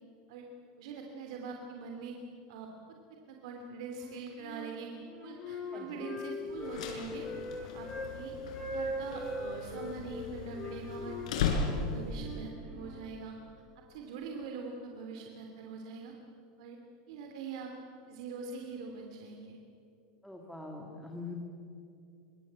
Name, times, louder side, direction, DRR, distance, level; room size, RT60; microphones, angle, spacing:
voice 1, 0.8-2.2 2.5-2.7 3.3-4.9 5.2-7.2 7.6-8.3 8.7-11.2 11.8-13.4 13.9-16.1 16.6-16.8 17.1-17.7 18.1-19.6, right 5 dB, 60° right, 2 dB, 3.0 m, -43 dB
Wind instrument woodwind instrument, 3.9-4.7 5.0-8.1 8.5-10.0 10.5-13.0, left 1 dB, 20° left, 6.2 m, -40 dB
voice 2, 5.7-6.0 20.2-21.3, left 3 dB, ahead, 0 dB, 1.9 m, -44 dB
sound 1, 6.5-12.2, left 5 dB, 80° left, 5.8 m, -37 dB
25.5 x 24.0 x 8.3 m, 2.6 s
supercardioid pair, 175°, 4 cm